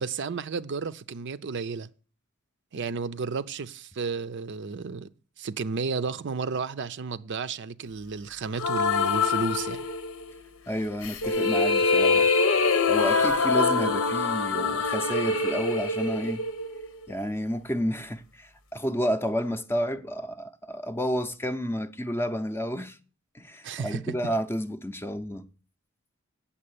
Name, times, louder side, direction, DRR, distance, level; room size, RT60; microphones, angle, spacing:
voice 1, 0.0-1.9 2.7-5.1 5.4-9.8 23.6-24.2, right 5 dB, 55° right, 0.5 m, -32 dB
sound 1, 8.6-10.3 11.0-17.1, left 4 dB, 75° left, 1.0 m, -24 dB
voice 2, 10.7-12.3 12.9-16.4 17.1-23.0 23.3-25.5, equal, 10° left, 0.6 m, -30 dB
8.7 x 7.2 x 8.3 m
head